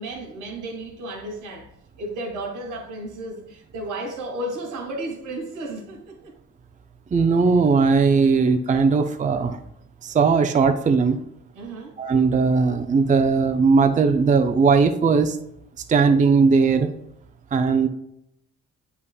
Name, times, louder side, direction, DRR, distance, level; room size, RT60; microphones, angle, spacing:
voice 1, 0.0-1.7 2.0-6.3 11.6-12.0, right 1 dB, 85° right, 2.0 m, -33 dB
voice 2, 7.1-9.6 10.0-11.2 12.0-15.4 15.9-16.9 17.5-17.9, right 5 dB, 25° right, 0.5 m, -18 dB
8.0 x 5.4 x 2.3 m
cardioid pair, 90°, 30 cm